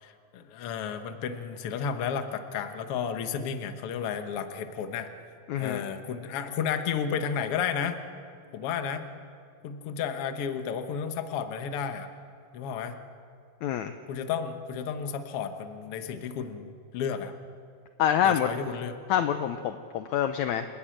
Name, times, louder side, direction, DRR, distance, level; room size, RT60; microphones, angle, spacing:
voice 1, 0.0-5.1 5.6-8.0 8.5-9.0 9.6-12.1 12.5-13.0 14.1-17.3 18.2-19.0, left 7 dB, 65° left, 7 dB, 1.5 m, -32 dB
voice 2, 5.5-5.8 13.6-13.9 18.0-18.5 19.1-20.7, left 9 dB, 80° left, 8 dB, 1.7 m, -26 dB
29.0 x 12.0 x 9.0 m, 2.4 s
omnidirectional pair, 4.2 m